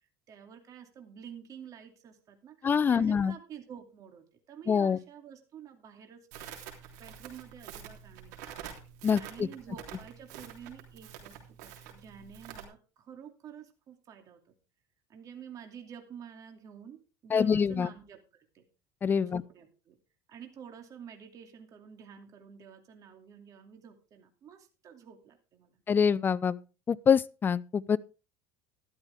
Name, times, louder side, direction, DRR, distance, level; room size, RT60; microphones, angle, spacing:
voice 1, 0.3-8.7 9.2-14.4 15.1-18.2 18.5-18.6 19.2-20.0 20.3-25.8, right 8 dB, 40° right, 2.5 m, -49 dB
voice 2, 2.6-3.3 4.7-5.0 9.0-9.5 17.3-17.9 19.0-19.4 25.9-26.6 26.9-28.0, left 6 dB, 20° left, 0.5 m, -25 dB
Crackle, 6.3-12.6, right 9 dB, 80° right, 3.4 m, -47 dB
12.5 x 12.5 x 3.5 m
supercardioid pair, 135°, 9 cm